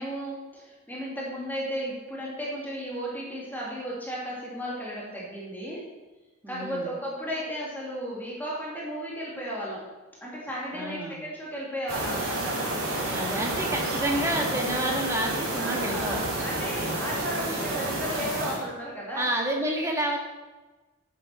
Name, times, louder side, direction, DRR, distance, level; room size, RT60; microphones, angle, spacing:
voice 1, 0.0-5.8 6.5-9.9 10.2-12.6 15.6-19.3, equal, 10° left, -5 dB, 2.6 m, -34 dB
voice 2, 6.4-6.9 10.7-11.2 13.1-16.3 19.1-20.2, right 1 dB, 15° right, 0 dB, 1.8 m, -29 dB
sound 1, 11.9-18.6, right 1 dB, 90° right, 3.1 m, -30 dB
9.3 x 7.6 x 5.7 m, 1.2 s
head